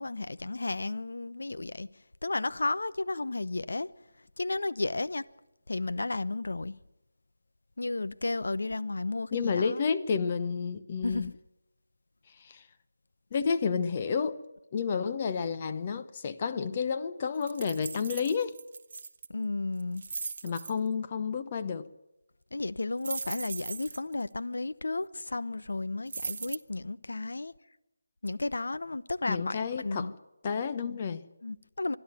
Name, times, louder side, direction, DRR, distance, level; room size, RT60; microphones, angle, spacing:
voice 1, 0.0-1.9 2.2-3.9 4.4-5.2 5.7-6.8 7.8-9.8 11.0-11.3 19.3-20.0 22.5-27.5 28.2-30.1 30.7-31.0 31.4-32.0, left 2 dB, 60° left, 0.8 m, -33 dB
voice 2, 9.3-11.3 12.4-12.7 13.3-14.4 14.7-18.6 20.4-21.9 29.3-30.1 30.4-31.3, left 5 dB, 30° left, 0.8 m, -30 dB
sound 1, 17.4-19.3 19.8-20.7 23.0-24.1 26.1-26.6, right 4 dB, 40° right, 1.0 m, -38 dB
25.5 x 11.0 x 9.2 m
figure-of-eight pair, 155°, 0 cm